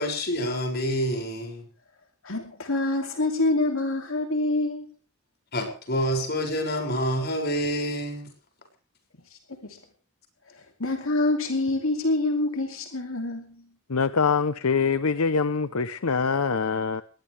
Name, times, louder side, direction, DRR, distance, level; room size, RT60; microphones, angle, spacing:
voice 1, 0.0-1.7 5.5-8.3, equal, 50° left, 6.5 m, -27 dB
voice 2, 2.2-4.9 9.3-9.8 10.5-13.6, left 2 dB, 70° left, 2.7 m, -26 dB
voice 3, 13.9-17.0, left 5 dB, 90° left, 0.9 m, -24 dB
21.0 x 19.5 x 3.5 m
head